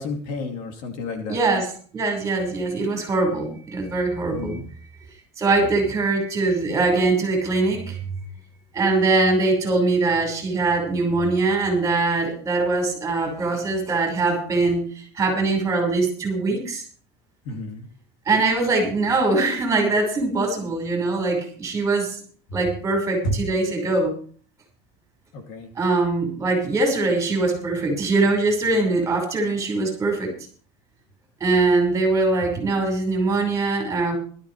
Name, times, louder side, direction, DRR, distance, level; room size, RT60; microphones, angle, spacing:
voice 1, 0.0-1.4 4.3-4.6 5.8-5.9 17.4-17.9 22.5-22.6 23.2-23.4 25.3-25.7, left 1 dB, 60° left, 4 dB, 2.7 m, -30 dB
voice 2, 1.3-1.7 1.9-4.6 5.4-8.0 8.7-16.8 18.3-22.2 22.5-24.1 25.8-30.3 31.4-34.2, right 3 dB, 20° right, 3 dB, 5.2 m, -22 dB
19.5 x 12.5 x 3.3 m, 0.44 s
cardioid pair, 150°, 15 cm